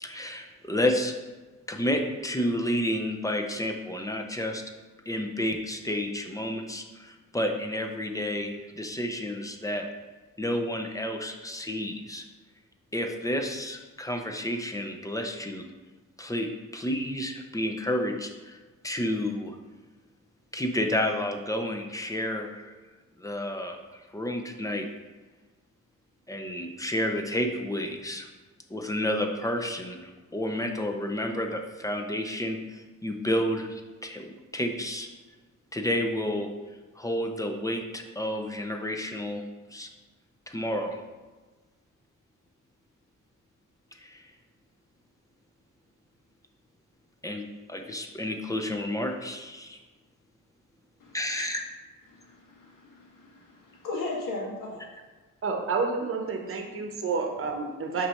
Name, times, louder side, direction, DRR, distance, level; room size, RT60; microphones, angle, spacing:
voice 1, 0.0-1.1 1.7-4.6 5.1-9.8 10.4-12.2 12.9-15.6 16.2-18.6 18.8-19.6 20.5-22.7 23.2-23.8 24.1-24.9 26.3-28.3 28.7-34.3 34.5-35.1 35.7-36.5 37.0-39.4 39.7-39.9 40.5-41.0 44.0-44.2 47.2-47.4 47.7-49.8 51.1-51.6, left 1 dB, 10° left, 3 dB, 0.4 m, -30 dB
voice 2, 51.0-51.6 52.1-54.8, left 2 dB, 75° left, -2 dB, 1.6 m, -37 dB
voice 3, 55.4-58.1, right 4 dB, 40° right, 2 dB, 0.8 m, -29 dB
5.9 x 3.1 x 5.5 m, 1.3 s
wide cardioid pair, 170°, 33 cm